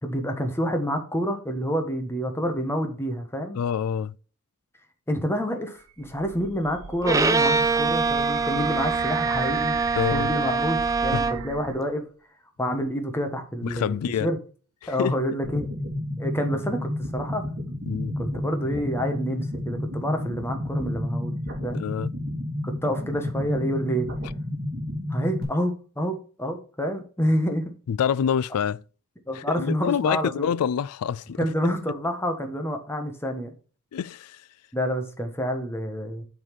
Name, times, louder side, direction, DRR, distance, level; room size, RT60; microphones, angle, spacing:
voice 1, 0.0-3.6 5.1-9.8 10.1-12.0 12.6-13.9 14.2-14.4 14.9-15.6 16.2-17.4 18.2-21.3 21.6-21.9 22.6-24.1 25.1-27.7 29.3-30.5 31.4-33.5 34.7-36.3, equal, 10° left, 1.3 m, -28 dB
voice 2, 3.6-4.2 10.0-10.3 11.1-11.2 13.6-14.3 14.8-15.2 17.8-18.2 21.7-22.1 27.9-28.8 29.3-31.8 33.9-34.4, left 8 dB, 90° left, 0.3 m, -27 dB
sound 1, 5.8-11.9, right 6 dB, 85° right, 0.8 m, -36 dB
Bowed string instrument, 7.0-11.5, right 4 dB, 15° right, 0.4 m, -24 dB
sound 2, 15.4-25.4, left 1 dB, 45° right, 2.7 m, -31 dB
7.8 x 4.1 x 5.2 m
head